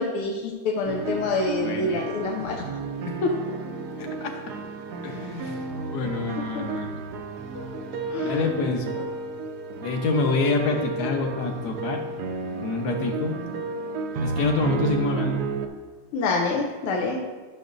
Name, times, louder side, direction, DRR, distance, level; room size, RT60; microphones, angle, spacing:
voice 1, 0.0-2.6 3.2-3.4 6.6-6.7 7.5-7.8 8.1-8.4 16.1-17.2, left 3 dB, 90° left, 0 dB, 1.7 m, -27 dB
sound 1, 0.8-15.7, right 4 dB, 70° right, 0.9 m, -32 dB
voice 2, 1.6-2.0 2.4-2.7 3.1-3.2 4.0-4.6 5.0-7.0 8.2-8.9 9.8-12.0 12.6-13.6 14.2-15.4, left 3 dB, 55° left, 3 dB, 1.3 m, -27 dB
13.0 x 6.4 x 2.6 m, 1.3 s
omnidirectional pair, 2.3 m